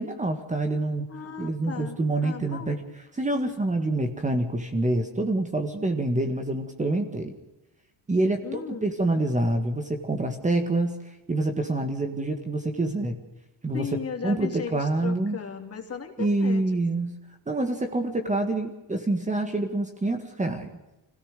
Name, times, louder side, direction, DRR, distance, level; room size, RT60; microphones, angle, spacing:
voice 1, 0.0-1.1 1.4-2.8 3.1-7.3 8.1-11.0 11.3-13.2 13.6-13.8 14.2-15.4 16.2-17.2 17.5-20.7, right 2 dB, 15° right, 5 dB, 1.8 m, -26 dB
voice 2, 1.1-2.8 8.4-8.9 13.7-16.6, left 7 dB, 30° left, 4 dB, 3.0 m, -36 dB
26.5 x 17.0 x 6.7 m, 1.0 s
cardioid pair, 165°, 45 cm